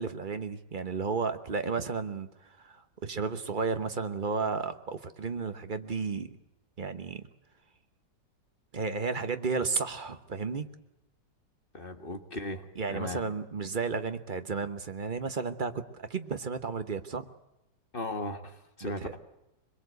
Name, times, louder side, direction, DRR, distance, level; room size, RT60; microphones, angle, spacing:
voice 1, 0.0-6.3 6.8-7.2 8.7-10.6 12.8-17.3 18.8-19.1, right 4 dB, 35° right, 9 dB, 1.0 m, -33 dB
voice 2, 11.7-13.2 17.9-19.2, left 1 dB, 30° left, 6 dB, 1.7 m, -37 dB
23.5 x 21.5 x 8.1 m, 0.89 s
omnidirectional pair, 1.9 m